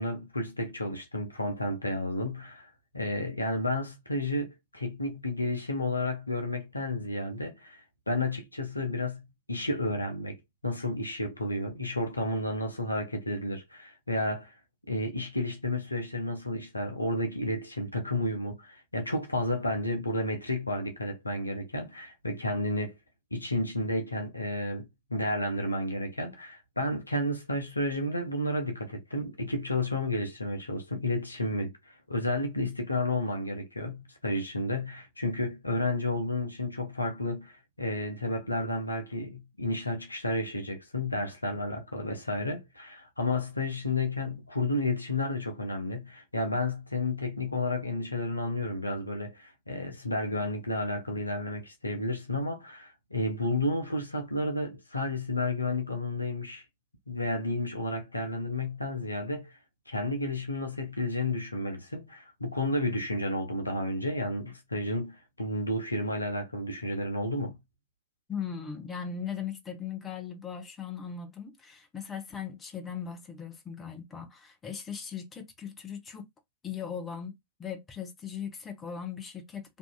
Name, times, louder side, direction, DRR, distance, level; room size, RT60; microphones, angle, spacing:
voice 1, 0.0-10.4 10.6-14.5 14.9-23.0 23.3-56.6 57.1-59.6 59.9-67.6, left 1 dB, 85° left, 0.6 m, -31 dB
voice 2, 68.3-76.3 76.6-79.8, left 7 dB, 20° left, 0.7 m, -39 dB
2.7 x 2.4 x 2.2 m
figure-of-eight pair, 90°, 0 cm